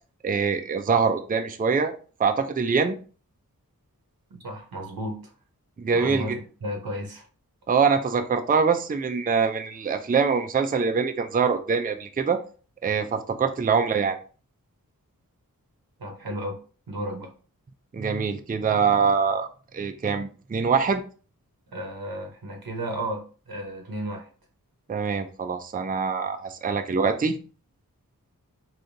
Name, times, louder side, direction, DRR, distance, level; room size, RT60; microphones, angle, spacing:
voice 1, 0.2-1.9 2.2-2.9 5.8-6.2 7.7-12.4 12.8-14.2 17.9-19.5 19.7-21.0 24.9-27.4, right 5 dB, 25° right, 7 dB, 0.4 m, -24 dB
voice 2, 4.3-5.3 5.9-7.3 16.0-16.6 16.9-17.3 21.7-24.3, right 1 dB, 85° right, 2 dB, 1.0 m, -33 dB
3.6 x 2.8 x 2.6 m, 0.38 s
cardioid pair, 40°, 35 cm